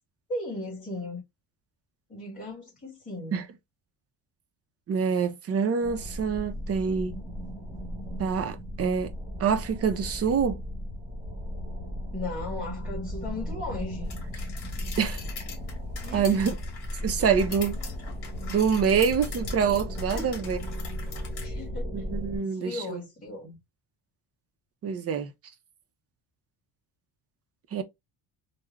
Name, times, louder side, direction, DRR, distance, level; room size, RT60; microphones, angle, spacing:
voice 1, 0.3-1.2 2.1-3.4 5.1-5.2 12.1-14.1 16.0-16.4 17.2-17.6 20.1-20.3 21.4-22.1 22.4-23.6, left 2 dB, 15° left, 1.6 m, -37 dB
voice 2, 4.9-7.2 8.2-9.1 9.4-10.6 15.0-15.2 16.1-16.5 17.0-17.8 18.5-20.6 21.9-23.0 24.8-25.3 27.7-27.8, right 6 dB, 35° right, 0.5 m, -26 dB
sound 1, 5.8-22.4, equal, 5° right, 1.0 m, -36 dB
sound 2, 14.1-21.5, left 6 dB, 55° left, 1.6 m, -43 dB
3.5 x 2.1 x 3.1 m
cardioid pair, 165°, 46 cm